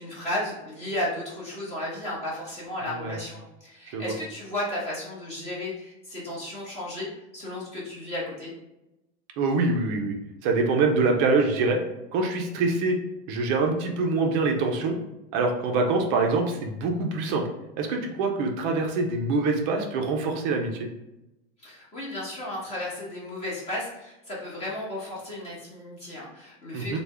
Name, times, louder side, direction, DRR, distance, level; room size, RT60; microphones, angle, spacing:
voice 1, 0.0-8.5 21.6-27.0, left 1 dB, 20° left, -6 dB, 1.0 m, -34 dB
voice 2, 2.8-3.2 3.9-4.1 9.4-10.2 10.4-11.8 12.1-13.0 13.3-14.9 15.3-17.4 17.8-20.9 26.7-27.0, right 3 dB, 35° right, 2 dB, 0.4 m, -25 dB
3.4 x 2.1 x 3.3 m, 0.94 s
supercardioid pair, 160°, 33 cm